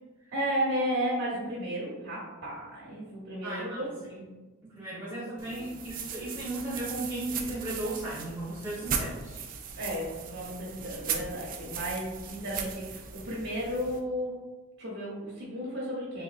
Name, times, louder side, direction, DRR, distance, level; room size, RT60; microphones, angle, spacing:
voice 1, 0.3-3.9 5.4-5.6 9.8-14.3 14.8-16.2, equal, 60° right, -6 dB, 0.9 m, -33 dB
voice 2, 3.4-4.3 4.6-9.4, right 1 dB, 10° right, -10 dB, 1.0 m, -36 dB
sound 1, 5.4-14.0, right 6 dB, 40° right, 0.3 m, -38 dB
3.5 x 3.2 x 2.4 m, 1.2 s
head